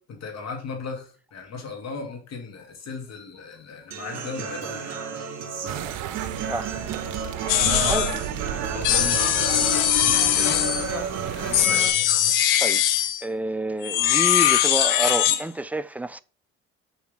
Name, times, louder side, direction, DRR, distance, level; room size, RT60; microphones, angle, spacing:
voice 1, 0.0-5.0 7.5-11.8, left 4 dB, 60° left, 2.6 m, -35 dB
Human voice / Acoustic guitar, 3.9-11.9, right 6 dB, 55° right, 2.4 m, -33 dB
sound 1, 5.7-11.7, right 11 dB, 80° right, 0.6 m, -33 dB
sound 2, 7.5-8.2 8.8-11.0 11.5-13.2 13.8-15.4, left 11 dB, 85° left, 1.0 m, -21 dB
voice 2, 13.2-16.2, right 1 dB, 5° right, 0.4 m, -28 dB
7.2 x 4.4 x 3.7 m
cardioid pair, 85°, 30 cm